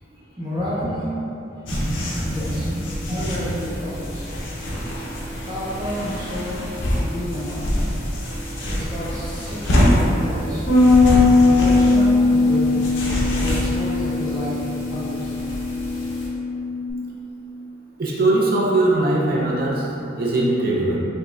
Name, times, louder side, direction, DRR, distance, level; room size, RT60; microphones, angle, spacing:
voice 1, 0.4-1.2 2.2-2.7 3.1-4.2 5.4-6.7 7.0-7.9 8.7-10.7 11.4-12.9 13.3-15.3, equal, 20° right, -10 dB, 0.8 m, -30 dB
sound 1, 1.7-16.3, equal, 75° left, 0.6 m, -26 dB
Bass guitar, 10.7-16.9, left 3 dB, 45° left, 1.0 m, -19 dB
voice 2, 18.0-21.0, right 2 dB, 50° right, -4 dB, 0.5 m, -20 dB
5.0 x 2.2 x 2.4 m, 2.8 s
head